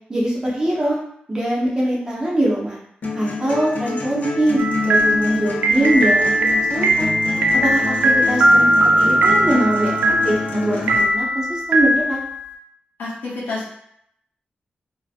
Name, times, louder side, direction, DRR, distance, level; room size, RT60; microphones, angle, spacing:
voice 1, 0.1-1.0 1.3-2.8 3.2-7.1 7.6-12.2, right 1 dB, 25° right, -5 dB, 0.7 m, -22 dB
sound 1, 3.0-11.0, left 3 dB, 55° left, 0.6 m, -27 dB
sound 2, 4.6-12.5, right 1 dB, 70° right, 0.4 m, -19 dB
voice 2, 13.0-13.7, left 3 dB, 90° left, -5 dB, 0.8 m, -28 dB
2.6 x 2.1 x 2.4 m, 0.71 s
wide cardioid pair, 120°, 3 cm